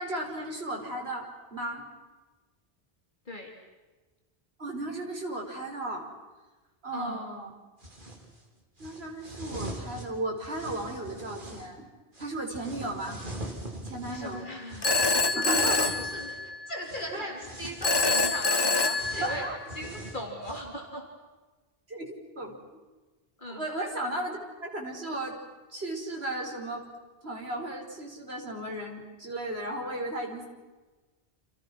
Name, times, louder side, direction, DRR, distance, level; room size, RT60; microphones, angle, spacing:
voice 1, 0.0-1.9 4.6-6.1 6.8-7.5 8.8-11.9 12.2-13.2 13.8-14.5 15.3-16.0 17.1-17.3 19.2-19.6 21.9-22.6 23.5-25.4 25.7-26.9 27.2-30.5, right 1 dB, 90° right, 1 dB, 5.3 m, -35 dB
voice 2, 6.9-7.2 14.1-14.9 15.4-15.6 16.0-19.5 19.8-21.1 23.4-23.6, equal, 50° left, 1 dB, 3.8 m, -38 dB
sound 1, 7.8-8.3 8.8-11.7 12.1-16.4 16.8-17.1 17.4-20.6, right 1 dB, 55° right, 3.9 m, -42 dB
Telephone, 14.8-16.8 17.8-19.8, left 3 dB, 25° left, 0.9 m, -26 dB
29.0 x 28.5 x 6.3 m, 1.2 s
omnidirectional pair, 1.0 m